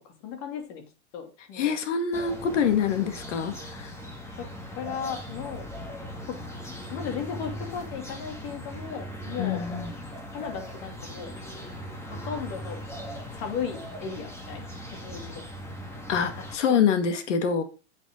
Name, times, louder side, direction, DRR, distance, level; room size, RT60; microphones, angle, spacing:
voice 1, 0.2-1.8 4.4-4.5 4.8-5.7 6.3-6.4 6.9-9.6 10.3-11.3 12.1-12.8 13.3-15.5 16.7-16.9, left 7 dB, 45° left, 4 dB, 2.9 m, -36 dB
voice 2, 1.5-3.9 9.4-9.9 16.1-17.6, left 7 dB, 80° left, 8 dB, 2.0 m, -25 dB
sound 1, 2.1-16.6, equal, 5° left, 2.0 m, -39 dB
8.8 x 8.1 x 3.9 m, 0.32 s
supercardioid pair, 150°, 35 cm